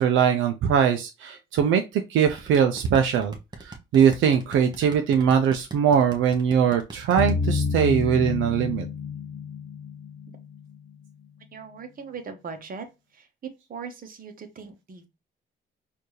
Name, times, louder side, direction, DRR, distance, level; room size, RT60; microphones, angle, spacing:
voice 1, 0.0-3.3 3.6-8.9, right 8 dB, 80° right, 0.6 m, -21 dB
sound 1, 2.4-7.3, right 2 dB, 20° right, 1.1 m, -41 dB
sound 2, 7.2-10.9, left 5 dB, 40° left, 0.6 m, -29 dB
voice 2, 11.5-12.9 13.1-13.3 13.7-15.1, right 5 dB, 45° right, 1.1 m, -39 dB
4.4 x 2.7 x 3.1 m
cardioid pair, 90°, 20 cm